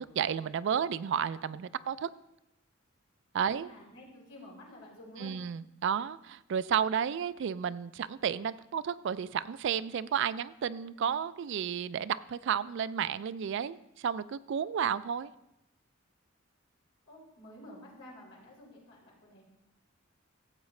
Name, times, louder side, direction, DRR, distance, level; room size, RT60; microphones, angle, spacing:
voice 1, 0.0-2.1 3.3-3.7 5.2-15.3, right 8 dB, 60° right, 16 dB, 0.3 m, -32 dB
voice 2, 3.4-5.4 17.1-19.4, left 1 dB, 85° left, -4 dB, 3.7 m, -51 dB
15.0 x 8.1 x 3.2 m, 0.88 s
head